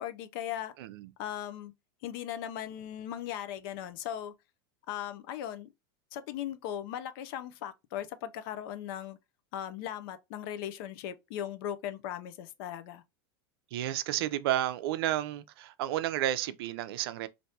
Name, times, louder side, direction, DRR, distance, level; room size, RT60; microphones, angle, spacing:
voice 1, 0.0-0.7 1.2-1.7 2.0-4.3 4.9-5.7 6.1-9.2 9.5-13.0, left 10 dB, 60° left, 0.6 m, -38 dB
voice 2, 0.8-1.1 13.7-17.3, right 13 dB, 70° right, 0.5 m, -31 dB
3.4 x 2.6 x 2.6 m
supercardioid pair, 125°, 13 cm